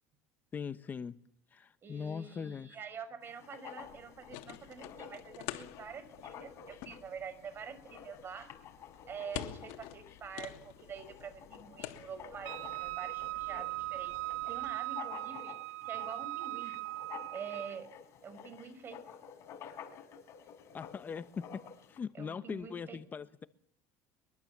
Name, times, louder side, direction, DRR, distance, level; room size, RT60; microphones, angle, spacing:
voice 1, 0.5-1.2 1.5-2.8 20.7-21.6 21.9-23.5, left 6 dB, 25° left, 1.0 m, -40 dB
voice 2, 1.8-8.5 9.1-15.6 15.8-16.7 17.3-17.9 18.2-19.0 22.1-23.0, right 6 dB, 35° right, 5.6 m, -46 dB
Writing, 3.2-22.0, left 8 dB, 45° left, 5.2 m, -51 dB
sound 1, 3.8-14.7, left 13 dB, 75° left, 2.8 m, -49 dB
Wind instrument woodwind instrument, 12.4-17.8, right 21 dB, 80° right, 1.0 m, -39 dB
23.5 x 23.0 x 7.4 m
supercardioid pair, 120°, 7 cm